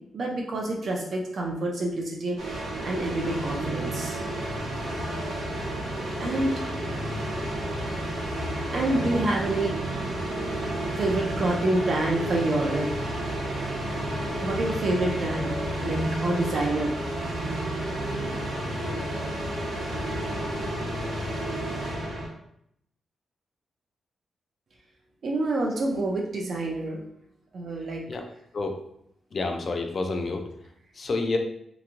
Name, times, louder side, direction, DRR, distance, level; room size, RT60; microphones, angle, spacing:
voice 1, 0.1-2.4 2.8-4.2 6.2-6.5 8.7-9.8 11.0-12.9 14.4-15.5 15.8-16.9 25.2-27.0 27.5-28.0, right 2 dB, 50° right, -1 dB, 0.4 m, -27 dB
sound 1, 2.4-22.3, right 1 dB, 80° right, 0.8 m, -31 dB
voice 2, 29.3-30.5 31.0-31.4, left 3 dB, 40° left, 4 dB, 0.4 m, -28 dB
2.9 x 2.5 x 2.5 m, 0.74 s
wide cardioid pair, 155°, 0 cm